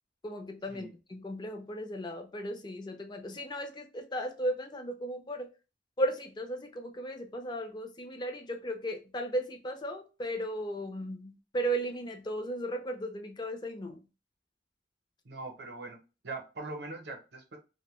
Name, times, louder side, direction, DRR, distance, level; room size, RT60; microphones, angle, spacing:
voice 1, 0.2-5.5 6.0-14.0, right 1 dB, 25° left, 0.4 m, -35 dB
voice 2, 15.2-16.0 16.2-17.6, right 3 dB, 65° right, 0.7 m, -41 dB
2.6 x 2.1 x 3.0 m
head